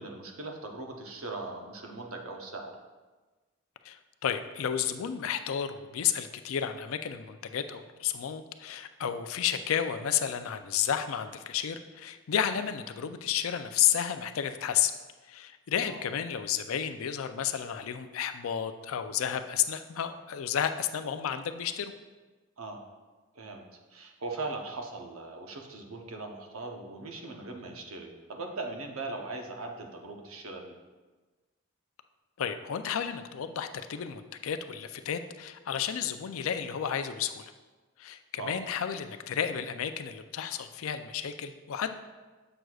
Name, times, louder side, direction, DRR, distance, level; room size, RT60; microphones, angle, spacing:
voice 1, 0.0-2.7 15.8-16.1 22.6-22.8 23.3-23.6 23.9-30.8 38.4-38.6, right 3 dB, 80° right, 2 dB, 0.8 m, -39 dB
voice 2, 3.8-14.9 15.3-21.9 32.4-37.5 38.0-42.0, left 9 dB, 75° left, 9 dB, 0.4 m, -32 dB
7.7 x 6.2 x 2.3 m, 1.3 s
head